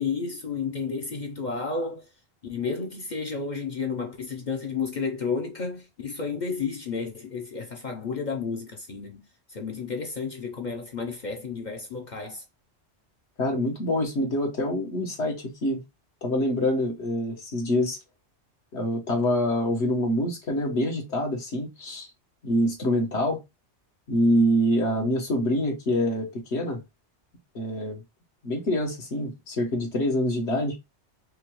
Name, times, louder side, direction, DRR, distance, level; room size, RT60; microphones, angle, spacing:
voice 1, 0.0-2.1 2.4-9.2 9.5-12.4, left 5 dB, 50° left, 0.7 m, -32 dB
voice 2, 13.4-15.8 16.2-18.0 18.7-22.1 22.4-23.4 24.1-26.8 27.5-28.0 28.4-30.8, left 1 dB, 70° left, 1.4 m, -25 dB
4.7 x 2.3 x 3.0 m
omnidirectional pair, 1.2 m